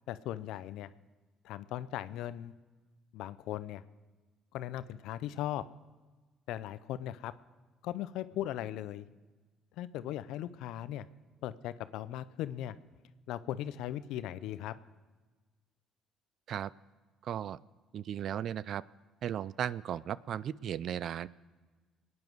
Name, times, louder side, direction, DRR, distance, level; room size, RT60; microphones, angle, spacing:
voice 1, 0.1-0.9 1.4-2.5 3.1-3.8 4.5-5.6 6.5-7.3 7.8-9.1 9.8-11.1 11.4-12.8 13.3-14.7, left 12 dB, 80° left, 15 dB, 0.5 m, -38 dB
voice 2, 17.2-17.6 17.9-18.8 19.2-21.3, right 10 dB, 60° right, 20 dB, 0.4 m, -36 dB
22.5 x 9.6 x 4.7 m, 1.3 s
supercardioid pair, 70°, 0 cm